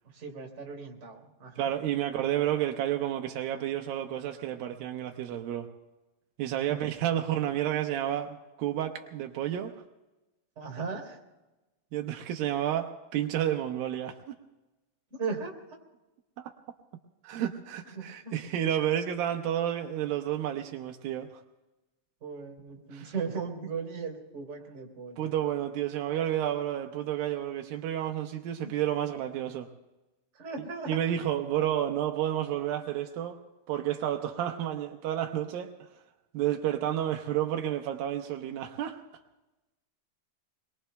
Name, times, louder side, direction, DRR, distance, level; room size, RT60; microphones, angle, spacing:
voice 1, 0.1-1.7 6.7-6.8 7.1-7.5 10.6-11.2 15.1-15.8 17.9-18.3 22.2-25.4 28.6-28.7 30.3-31.0, right 5 dB, 30° right, 1 dB, 3.5 m, -37 dB
voice 2, 1.6-5.7 6.4-9.7 11.9-14.4 17.2-21.4 22.9-23.1 25.2-29.7 30.9-33.4 33.7-35.7 36.3-39.0, right 11 dB, 85° right, 4 dB, 2.6 m, -30 dB
27.0 x 22.0 x 2.3 m, 1.1 s
omnidirectional pair, 4.1 m